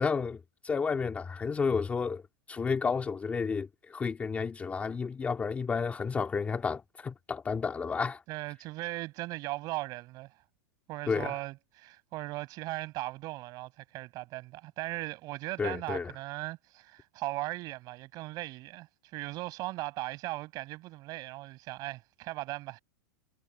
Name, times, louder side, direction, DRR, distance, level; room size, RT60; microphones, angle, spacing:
voice 1, 0.0-2.2 2.5-8.2 11.1-11.3 15.6-16.1, left 5 dB, 15° left, 2.0 m, -31 dB
voice 2, 8.3-10.3 10.9-22.8, right 19 dB, 35° right, 5.7 m, -38 dB
supercardioid pair, 155°, 11 cm